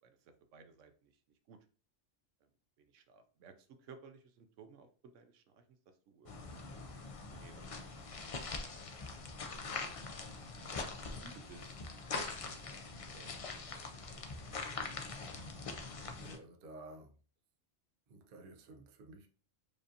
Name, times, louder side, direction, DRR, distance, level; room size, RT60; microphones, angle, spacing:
voice 1, 0.0-1.1 1.5-1.6 2.8-5.6 6.1-6.8 7.3-7.9 8.1-8.4 10.2-10.8 11.2-14.7, right 5 dB, 85° right, 0.9 m, -58 dB
sound 1, 6.3-16.4, left 4 dB, 55° left, 0.3 m, -43 dB
voice 2, 16.2-17.2 18.1-19.3, right 2 dB, 55° right, 0.7 m, -53 dB
4.9 x 2.5 x 2.7 m
omnidirectional pair, 1.2 m